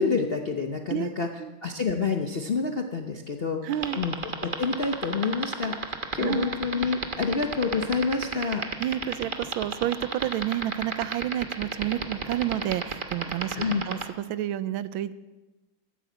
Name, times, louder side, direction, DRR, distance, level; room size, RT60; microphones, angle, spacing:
voice 1, 0.0-1.3 1.6-3.6 4.0-8.6 13.5-13.8, left 4 dB, 50° left, 4 dB, 0.6 m, -28 dB
voice 2, 3.6-4.0 6.2-6.6 8.8-13.6 13.8-15.1, right 12 dB, 85° right, 15 dB, 1.4 m, -30 dB
sound 1, 3.7-14.0, right 5 dB, 35° right, 0.9 m, -30 dB
13.0 x 10.0 x 8.0 m, 1.1 s
omnidirectional pair, 2.2 m